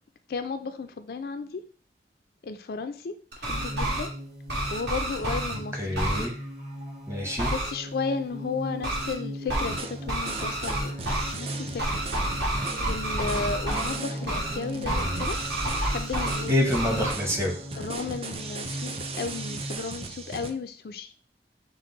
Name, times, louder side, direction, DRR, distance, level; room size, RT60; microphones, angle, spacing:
voice 1, 0.3-1.6 2.4-4.1 4.7-5.8 7.4-10.9 11.3-12.4 12.8-15.4 15.9-17.2 17.8-21.1, left 4 dB, 55° left, 8 dB, 0.4 m, -34 dB
sound 1, 3.3-4.1 4.5-5.5 5.9-6.3 7.4-7.7 8.8-9.1 9.5-9.8 10.1-11.3 11.8-14.0 14.3-14.6 14.8-16.4 16.7-17.1, right 1 dB, 70° right, 1.5 m, -29 dB
sound 2, 3.4-19.8, equal, 50° right, 2.0 m, -39 dB
voice 2, 5.5-6.4 7.1-7.5 16.5-17.5, left 1 dB, 15° right, 1 dB, 0.9 m, -27 dB
sound 3, 9.6-20.5, right 3 dB, 35° right, 0.4 m, -38 dB
5.9 x 2.1 x 3.9 m, 0.41 s
head